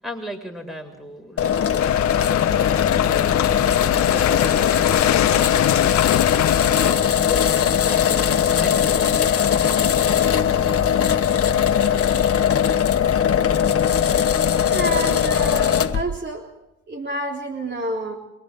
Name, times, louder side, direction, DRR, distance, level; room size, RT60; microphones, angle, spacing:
voice 1, 0.0-3.5 4.1-6.1 6.7-10.0, left 1 dB, ahead, 4 dB, 6.3 m, -37 dB
sound 1, 1.4-16.0, left 8 dB, 50° left, 1.5 m, -19 dB
sound 2, 1.8-6.9, left 13 dB, 65° left, 0.7 m, -24 dB
voice 2, 14.7-16.5 16.9-18.1, right 2 dB, 35° right, 1 dB, 3.6 m, -28 dB
27.5 x 24.0 x 3.9 m, 0.91 s
cardioid pair, 90°, 30 cm